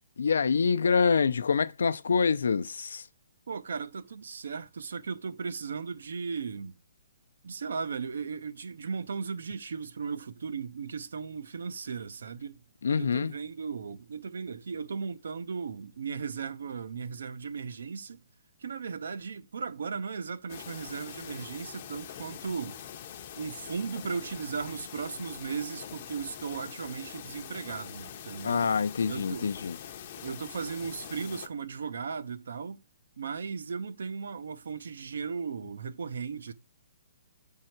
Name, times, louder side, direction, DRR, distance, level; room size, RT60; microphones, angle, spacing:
voice 1, 0.2-3.1 12.8-13.3 28.4-29.8, left 5 dB, 85° left, 0.5 m, -26 dB
voice 2, 3.5-6.7 7.4-12.6 13.0-18.2 18.6-22.8 23.4-28.7 29.1-29.6 30.2-32.8 33.2-36.5, right 5 dB, 75° right, 0.7 m, -36 dB
sound 1, 20.5-31.5, left 9 dB, 35° left, 0.7 m, -44 dB
6.5 x 3.7 x 4.5 m
hypercardioid pair, 165°, 0 cm